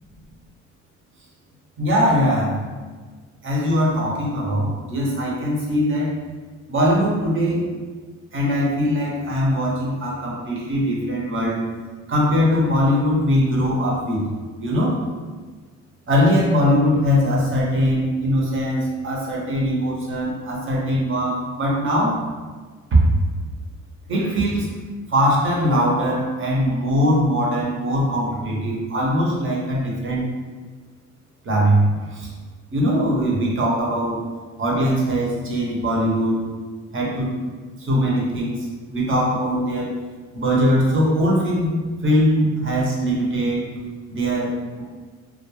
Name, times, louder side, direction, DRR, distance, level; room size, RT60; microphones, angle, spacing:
voice 1, 1.8-2.6 3.4-6.2 6.7-7.7 8.3-11.6 12.1-14.3 14.6-15.0 16.1-22.2 22.9-23.0 24.1-24.7 25.1-30.2 31.4-32.3 32.7-34.2 34.6-36.4 36.9-37.3 37.8-38.7 38.9-40.0 40.3-41.7 42.0-43.6 44.1-44.8, equal, 45° right, -3 dB, 0.8 m, -21 dB
2.3 x 2.1 x 3.0 m, 1.4 s
cardioid pair, 90°, 30 cm